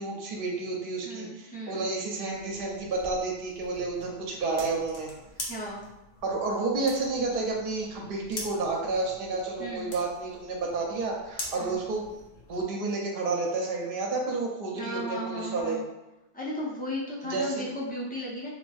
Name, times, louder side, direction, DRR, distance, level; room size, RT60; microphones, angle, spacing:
voice 1, 0.0-5.1 6.2-12.2 12.5-15.8 17.3-17.7, right 3 dB, 65° right, -1 dB, 0.8 m, -30 dB
voice 2, 1.0-1.9 5.5-5.9 9.6-9.9 11.6-11.8 14.8-15.8 16.3-18.5, equal, 15° left, -6 dB, 0.3 m, -35 dB
sound 1, 2.3-12.6, left 2 dB, 50° left, 0.6 m, -44 dB
2.5 x 2.4 x 2.3 m, 0.97 s
omnidirectional pair, 1.0 m